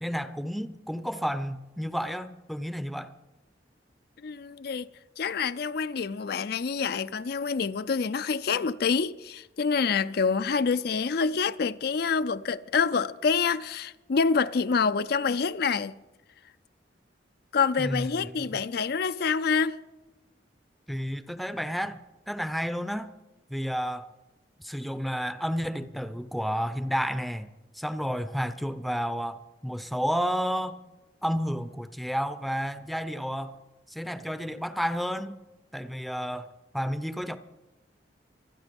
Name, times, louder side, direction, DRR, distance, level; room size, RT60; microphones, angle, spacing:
voice 1, 0.0-3.1 17.8-18.5 20.9-22.0 22.3-23.1 23.5-24.1 24.6-30.8 31.2-33.6 33.9-35.4 35.7-36.5 36.7-37.4, equal, ahead, 0.6 m, -31 dB
voice 2, 4.2-4.9 5.2-15.9 17.5-19.8, left 5 dB, 60° left, 0.4 m, -27 dB
25.5 x 9.8 x 5.3 m
head